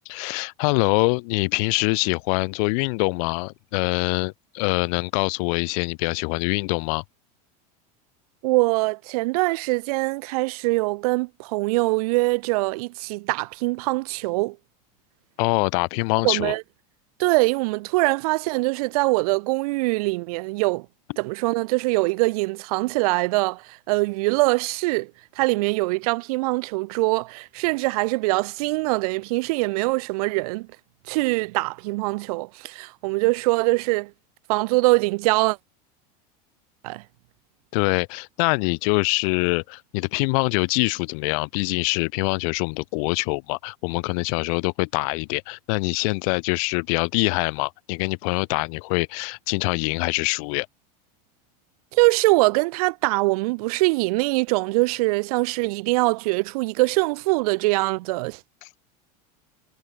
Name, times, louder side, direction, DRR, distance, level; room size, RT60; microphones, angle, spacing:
voice 1, 0.0-7.0 15.4-16.5 37.7-50.7 58.6-58.7, left 34 dB, 60° left, 1.4 m, -24 dB
voice 2, 8.4-14.6 16.2-16.6 17.2-20.9 21.2-25.1 25.4-30.7 31.1-34.1 34.5-35.6 36.8-37.0 51.9-58.4, right 24 dB, 65° right, 0.7 m, -23 dB
supercardioid pair, 155°, 20 cm